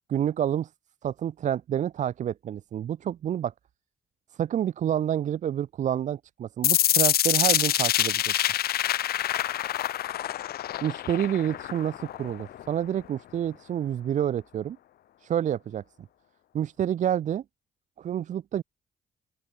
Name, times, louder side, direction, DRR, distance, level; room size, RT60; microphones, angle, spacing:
voice 1, 0.1-0.7 1.0-3.5 4.4-8.3 10.8-14.8 15.2-15.8 16.5-17.4 18.0-18.6, right 10 dB, 45° right, 0.4 m, -28 dB
sound 1, 6.6-12.6, left 12 dB, 65° left, 0.6 m, -26 dB
open air
hypercardioid pair, 45°, 17 cm